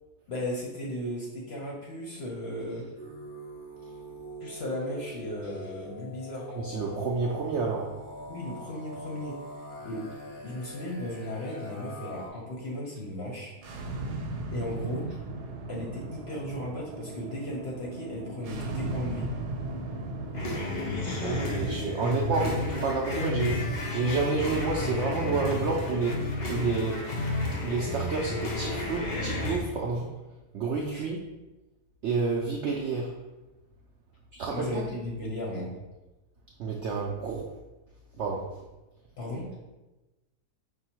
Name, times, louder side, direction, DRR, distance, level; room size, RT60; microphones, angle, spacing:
voice 1, 0.3-2.9 4.4-6.5 8.3-9.4 9.8-10.1 10.4-13.5 14.5-15.1 15.7-19.3 21.7-22.2 30.9-31.0 34.5-35.7 39.2-39.5, left 1 dB, 55° left, -2 dB, 0.8 m, -36 dB
sound 1, 3.0-12.3, left 1 dB, 15° right, 0.8 m, -43 dB
voice 2, 6.5-7.9 21.1-27.3 27.6-30.1 30.5-31.2 32.0-33.1 34.3-34.9 36.6-37.5 38.2-38.5, right 4 dB, 75° right, -1 dB, 0.6 m, -30 dB
sound 2, 13.5-28.5, right 2 dB, 90° right, 1.2 m, -39 dB
sound 3, 20.3-29.6, left 2 dB, 80° left, 0.4 m, -32 dB
5.2 x 2.1 x 4.4 m, 1.1 s
omnidirectional pair, 1.7 m